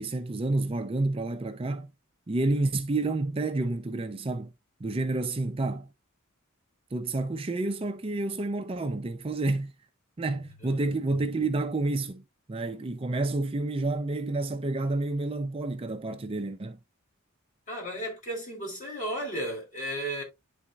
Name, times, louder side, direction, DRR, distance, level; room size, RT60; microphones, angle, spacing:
voice 1, 0.0-1.9 2.3-4.5 4.8-5.9 6.9-9.7 10.2-12.2 12.5-16.8, right 2 dB, 25° right, 0.5 m, -29 dB
voice 2, 17.7-20.2, right 1 dB, 35° left, 3.8 m, -34 dB
11.0 x 4.1 x 2.4 m
head